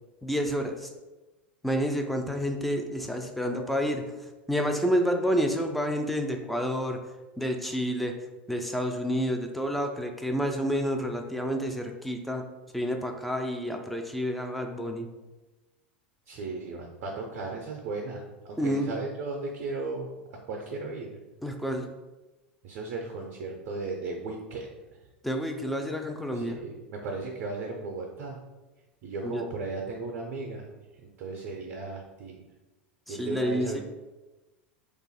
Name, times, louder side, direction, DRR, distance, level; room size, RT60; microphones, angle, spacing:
voice 1, 0.2-0.9 1.6-4.0 4.5-7.0 7.4-8.2 8.5-12.4 12.7-15.1 18.6-18.9 21.4-21.9 25.2-26.6 29.2-29.4 33.1-33.8, equal, ahead, 3 dB, 0.4 m, -29 dB
voice 2, 16.3-18.2 18.5-20.1 20.4-21.1 22.6-24.7 26.3-28.4 29.0-30.7 31.2-32.4 33.1-33.8, right 3 dB, 50° right, 1 dB, 0.5 m, -35 dB
2.5 x 2.4 x 4.0 m, 1.1 s
hypercardioid pair, 90°, 6 cm